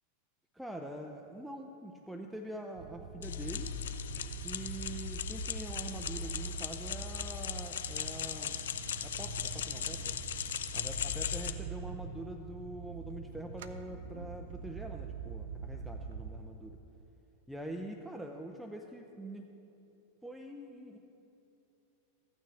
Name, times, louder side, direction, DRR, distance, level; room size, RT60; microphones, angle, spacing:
voice 1, 0.5-3.7 4.4-8.6 9.0-10.2 10.7-16.8 17.5-19.5 20.2-21.0, right 1 dB, 5° right, 2 dB, 0.6 m, -44 dB
sound 1, 2.7-16.4, right 5 dB, 55° right, 0.5 m, -44 dB
sound 2, 3.2-11.5, left 9 dB, 60° left, 0.5 m, -38 dB
14.5 x 9.0 x 3.3 m, 2.9 s
figure-of-eight pair, 90°, 0 cm